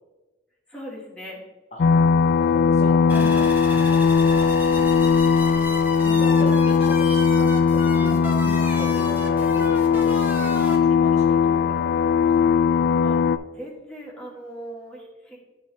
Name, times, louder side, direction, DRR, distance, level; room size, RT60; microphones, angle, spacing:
voice 1, 0.7-1.4 9.4-9.5 13.0-13.2 13.5-15.4, equal, 5° left, -4 dB, 1.4 m, -39 dB
sound 1, 1.8-13.4, left 6 dB, 60° left, 0.3 m, -19 dB
voice 2, 2.4-4.1 6.0-10.1 10.5-11.6, equal, 40° left, 0 dB, 1.1 m, -37 dB
sound 2, 3.1-10.8, right 1 dB, 10° right, 1.0 m, -35 dB
11.5 x 3.8 x 3.1 m, 1.1 s
head